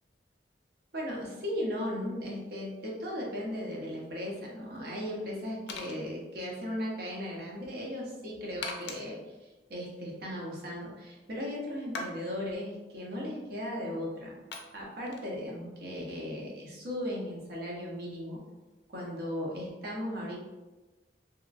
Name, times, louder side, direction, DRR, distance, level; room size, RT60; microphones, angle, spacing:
voice 1, 0.9-14.3 14.7-18.4 18.9-20.4, equal, 60° right, -3 dB, 0.7 m, -37 dB
sound 1, 3.3-19.2, left 3 dB, 70° left, 0.4 m, -48 dB
2.8 x 2.4 x 2.3 m, 1.1 s
head